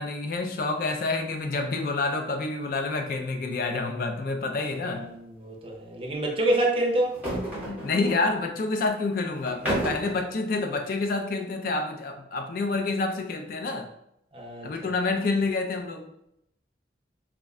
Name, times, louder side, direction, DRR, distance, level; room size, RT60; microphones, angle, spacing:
voice 1, 0.0-5.1 7.7-13.9 14.6-16.1, left 3 dB, 50° left, 4 dB, 0.3 m, -28 dB
sound 1, 4.6-4.8 5.1-5.2 7.0-8.2 9.4-10.2, right 1 dB, 10° right, 0.8 m, -31 dB
voice 2, 5.4-7.2 14.3-14.9, right 1 dB, 30° right, -1 dB, 0.5 m, -27 dB
2.3 x 2.1 x 3.6 m, 0.78 s
head